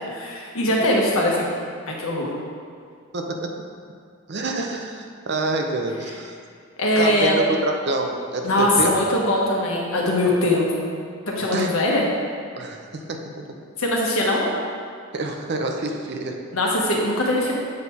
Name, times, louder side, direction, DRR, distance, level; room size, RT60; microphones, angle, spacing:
voice 1, 0.1-1.6 1.9-2.3 6.8-7.4 8.4-10.9 11.3-12.0 13.8-14.4 16.5-17.5, left 1 dB, 70° left, -2 dB, 1.3 m, -21 dB
voice 2, 3.1-3.5 4.3-6.3 7.0-8.9 11.5-11.7 12.6-12.8 13.1-13.2 15.1-16.4, right 2 dB, 50° right, 3 dB, 0.6 m, -27 dB
7.6 x 4.1 x 4.6 m, 2.2 s
head